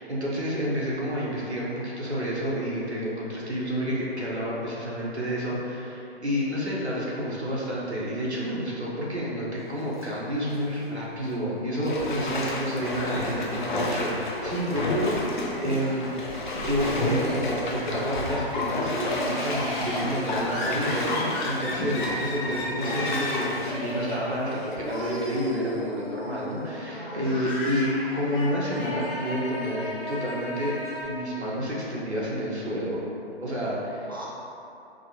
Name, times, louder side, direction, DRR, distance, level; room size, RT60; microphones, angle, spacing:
voice 1, 0.0-16.2 16.6-30.8 31.0-33.0 33.4-34.1, equal, 90° right, -6 dB, 0.9 m, -29 dB
Bathtub (filling or washing), 9.7-10.1 10.5-10.6 11.8-24.9 25.4-25.5, left 1 dB, 50° left, 0.5 m, -31 dB
voice 2, 12.9-13.4 27.1-27.8 34.1-34.3, right 1 dB, 20° right, -7 dB, 0.4 m, -36 dB
Laughter, 16.1-17.8 18.1-31.0, left 1 dB, 5° left, 0.7 m, -35 dB
4.9 x 2.3 x 2.8 m, 2.8 s
figure-of-eight pair, 135°, 32 cm